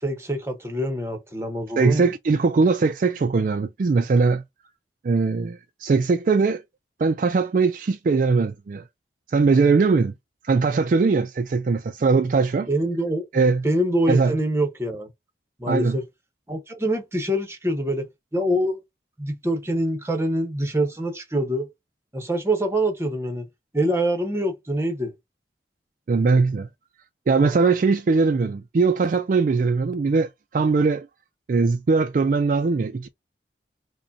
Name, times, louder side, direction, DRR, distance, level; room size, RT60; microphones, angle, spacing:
voice 1, 0.0-2.1 12.7-15.1 15.6-16.0 16.5-18.0 18.3-18.8 19.2-21.7 22.1-23.5 23.7-25.1, right 1 dB, 15° right, 0.9 m, -25 dB
voice 2, 1.8-4.4 5.0-6.6 7.0-8.8 9.3-10.1 10.4-12.7 13.3-13.7 14.1-14.3 15.7-16.0 26.1-26.7 27.3-31.1 31.5-33.1, right 4 dB, 45° right, 0.3 m, -20 dB
4.9 x 2.2 x 2.6 m
head